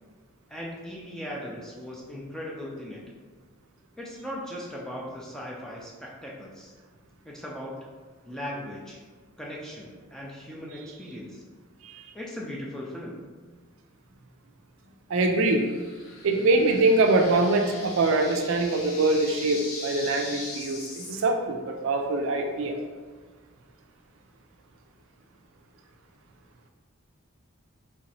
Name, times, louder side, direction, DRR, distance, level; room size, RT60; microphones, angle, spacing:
voice 1, 0.5-3.0 4.0-6.7 7.3-7.7 8.2-9.0 9.4-11.4 12.1-13.2, equal, 5° left, -4 dB, 0.4 m, -38 dB
voice 2, 15.1-15.6 16.2-22.8, right 2 dB, 70° right, 4 dB, 0.4 m, -23 dB
sound 1, 15.4-21.2, left 2 dB, 85° left, 0.7 m, -41 dB
3.3 x 2.9 x 2.7 m, 1.4 s
head